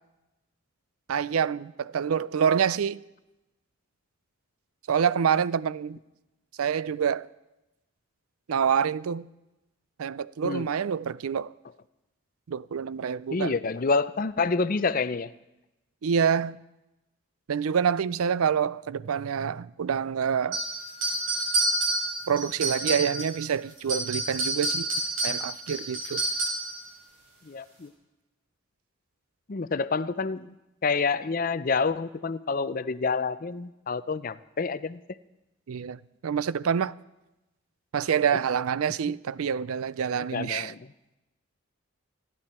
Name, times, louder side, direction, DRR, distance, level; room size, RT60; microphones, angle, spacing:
voice 1, 1.1-3.0 4.9-6.0 6.6-7.3 8.5-9.3 10.0-11.5 12.5-13.6 16.0-16.6 17.5-20.6 22.3-24.9 25.2-26.2 35.7-36.9 37.9-40.7, right 7 dB, 90° right, 0.4 m, -27 dB
voice 2, 13.3-15.3 27.4-27.9 29.5-30.5 30.8-35.0 40.3-40.8, left 4 dB, 40° left, 0.5 m, -28 dB
sound 1, 20.5-23.4 23.8-26.8, right 2 dB, 75° right, 5.9 m, -28 dB
27.0 x 11.0 x 4.3 m
head